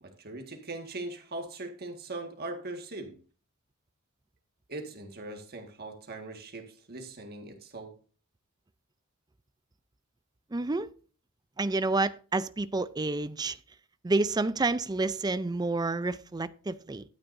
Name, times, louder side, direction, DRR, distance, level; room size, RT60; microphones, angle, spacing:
voice 1, 0.0-3.2 4.7-8.0, right 2 dB, 45° right, 1.8 m, -40 dB
voice 2, 10.5-10.9 11.6-13.6 14.0-17.0, right 3 dB, 20° right, 0.5 m, -29 dB
12.5 x 9.9 x 2.7 m
head